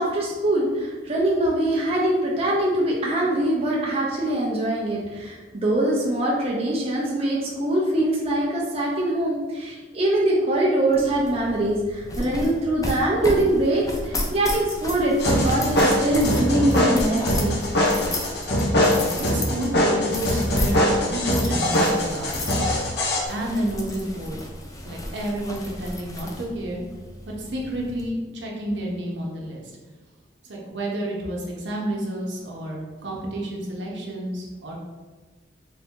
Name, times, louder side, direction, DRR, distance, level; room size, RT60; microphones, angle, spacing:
voice 1, 0.0-17.6, right 1 dB, 35° right, -4 dB, 0.6 m, -23 dB
sound 1, 10.9-28.1, left 1 dB, 20° left, 0.5 m, -33 dB
sound 2, 15.2-23.2, left 1 dB, 60° left, 0.7 m, -22 dB
voice 2, 19.0-22.6 23.3-24.4 24.8-26.8 27.2-29.6 30.4-34.8, right 1 dB, 70° right, -2 dB, 0.9 m, -30 dB
3.8 x 2.7 x 3.6 m, 1.3 s
head